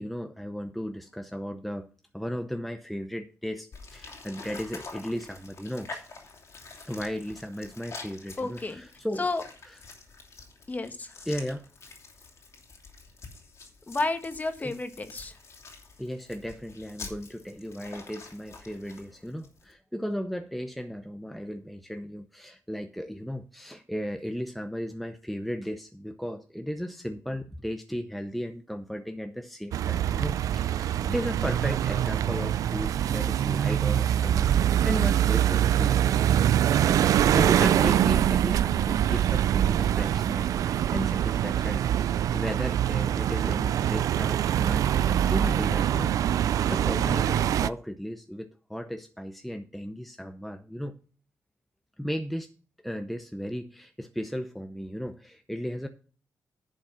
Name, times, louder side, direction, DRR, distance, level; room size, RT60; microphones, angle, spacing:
voice 1, 0.0-1.9 2.1-6.1 6.8-9.3 9.6-9.8 11.3-11.7 14.6-14.7 16.0-36.2 37.1-50.9 52.0-52.5 52.8-55.9, equal, ahead, 7 dB, 0.8 m, -35 dB
sound 1, 3.7-19.7, left 4 dB, 60° left, 2.8 m, -46 dB
voice 2, 8.4-8.8 9.2-9.4 10.7-11.1 13.9-15.3, left 3 dB, 30° left, 8 dB, 1.5 m, -31 dB
sound 2, 29.7-47.7, right 10 dB, 80° right, 0.4 m, -24 dB
10.5 x 5.1 x 5.7 m, 0.40 s
cardioid pair, 80°, 6 cm